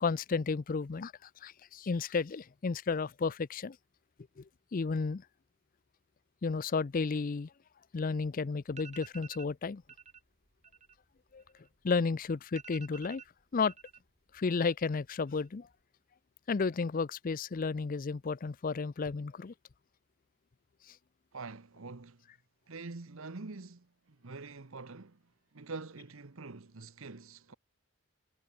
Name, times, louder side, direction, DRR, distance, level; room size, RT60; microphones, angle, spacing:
voice 1, 0.0-3.8 4.4-4.5 4.7-5.2 6.4-7.5 7.9-9.8 11.3-11.4 11.8-13.2 13.5-13.7 14.3-15.7 16.5-19.5 20.9-21.0, left 4 dB, 40° left, 0.4 m, -32 dB
sound 1, 8.3-8.4 8.7-9.5 9.9-10.2 10.5-12.0 12.2-12.3 12.6-14.0 14.3-14.9 15.2-15.7, right 7 dB, 30° right, 1.8 m, -52 dB
voice 2, 21.3-22.2 22.7-25.2 25.5-27.5, right 3 dB, 65° right, 1.0 m, -45 dB
head